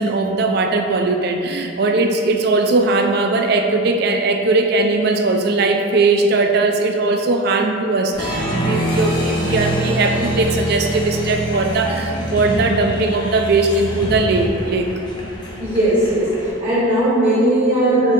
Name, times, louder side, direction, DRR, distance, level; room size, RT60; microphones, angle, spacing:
voice 1, 0.0-14.9, right 3 dB, 50° right, 4 dB, 0.3 m, -19 dB
Applause, 8.1-16.5, right 1 dB, 20° left, 0.5 m, -24 dB
voice 2, 15.6-16.3 16.6-18.1, right 1 dB, 30° right, -10 dB, 0.8 m, -17 dB
7.6 x 2.7 x 2.5 m, 2.6 s
head